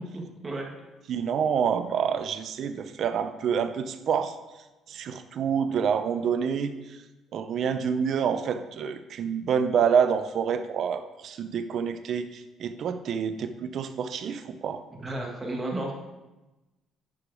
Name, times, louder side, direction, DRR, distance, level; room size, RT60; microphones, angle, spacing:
voice 1, 1.1-4.4 4.9-7.0 7.3-14.8, right 7 dB, 60° right, 9 dB, 0.6 m, -27 dB
voice 2, 15.0-15.9, right 2 dB, 20° right, -1 dB, 2.1 m, -32 dB
10.5 x 4.9 x 5.0 m, 1.1 s
cardioid pair, 100°, 0 cm